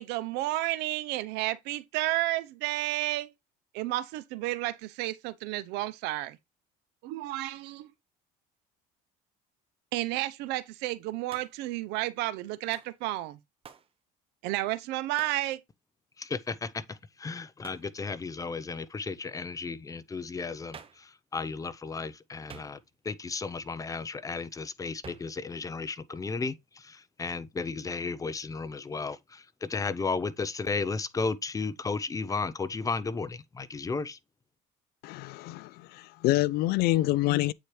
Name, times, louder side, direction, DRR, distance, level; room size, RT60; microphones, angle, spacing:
voice 1, 0.0-3.3 3.7-6.4 7.0-7.9 9.9-13.4 14.4-15.6, right 17 dB, 75° right, 0.7 m, -31 dB
Hands, 11.3-11.7 12.7-13.0 13.6-13.9 15.2-15.4 17.6-17.9 20.7-21.1 22.5-23.1 25.0-25.4, right 7 dB, 30° right, 0.9 m, -49 dB
voice 2, 16.2-22.8 23.0-34.2, left 4 dB, 20° left, 0.6 m, -34 dB
voice 3, 35.0-37.5, left 17 dB, 65° left, 0.4 m, -27 dB
8.1 x 4.4 x 3.2 m
supercardioid pair, 105°, 17 cm